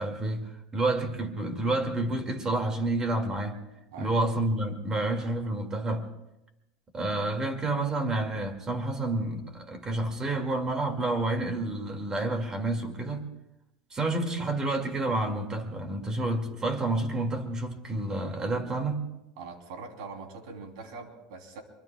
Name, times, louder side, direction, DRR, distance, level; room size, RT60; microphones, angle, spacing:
voice 1, 0.0-3.6 4.0-6.1 6.9-13.3 13.9-19.0, right 2 dB, 20° right, 2.3 m, -29 dB
voice 2, 19.4-21.6, right 4 dB, 75° right, 3.4 m, -42 dB
25.0 x 23.5 x 2.3 m
supercardioid pair, 130°, 3 cm